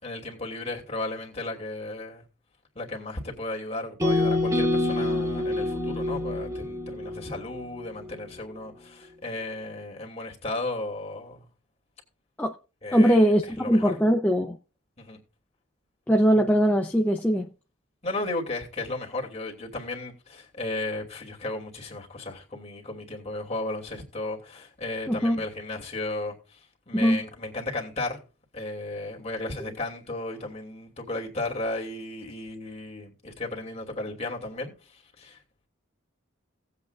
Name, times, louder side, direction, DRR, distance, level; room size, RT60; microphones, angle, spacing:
voice 1, 0.0-2.2 2.7-11.5 12.8-13.2 13.6-13.9 15.0-15.2 18.0-26.6 26.9-28.2 28.5-35.4, left 2 dB, 30° left, 2.7 m, -34 dB
sound 1, 4.0-8.1, left 2 dB, 15° right, 2.4 m, -27 dB
voice 2, 12.9-14.5 16.1-17.5 25.1-25.4 26.9-27.2, equal, 5° left, 0.6 m, -21 dB
18.0 x 8.2 x 2.5 m
head